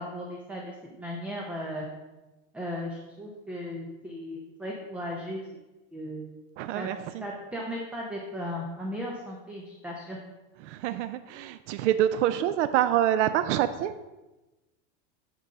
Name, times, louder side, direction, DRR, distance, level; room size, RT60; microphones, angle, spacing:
voice 1, 0.0-1.9 2.5-5.4 5.9-6.3 6.7-6.9 7.2-10.2, equal, 5° right, -2 dB, 0.5 m, -36 dB
voice 2, 6.6-7.2 10.6-13.9, right 11 dB, 70° right, 12 dB, 0.5 m, -26 dB
8.2 x 3.9 x 6.6 m, 1.1 s
supercardioid pair, 165°, 38 cm